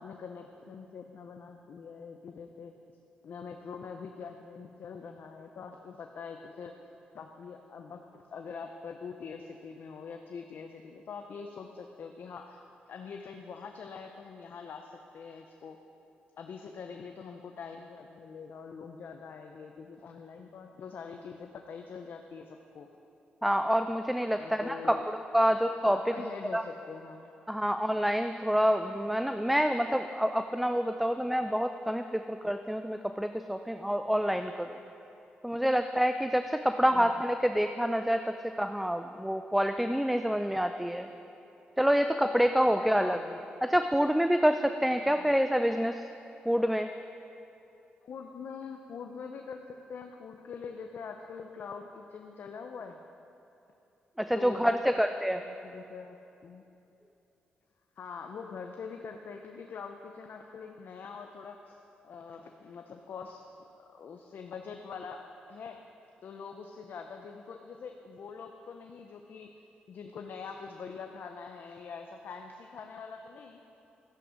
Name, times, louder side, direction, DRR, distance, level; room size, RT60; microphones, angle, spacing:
voice 1, 0.0-2.8 3.2-6.8 7.1-12.6 12.9-15.8 16.4-22.9 24.4-25.0 25.4-27.3 36.9-37.2 43.0-43.4 45.1-45.3 48.0-53.0 54.3-55.0 55.3-56.6 58.0-63.4 63.7-65.8 66.2-69.5 69.9-73.6, left 5 dB, 65° left, 4 dB, 0.7 m, -44 dB
voice 2, 23.4-26.0 26.5-26.6 27.5-34.8 35.4-41.1 41.8-43.2 43.6-46.1 46.5-46.9 54.2-55.4, equal, 5° right, 8 dB, 0.5 m, -27 dB
13.5 x 10.0 x 5.1 m, 2.8 s
cardioid pair, 65°, 4 cm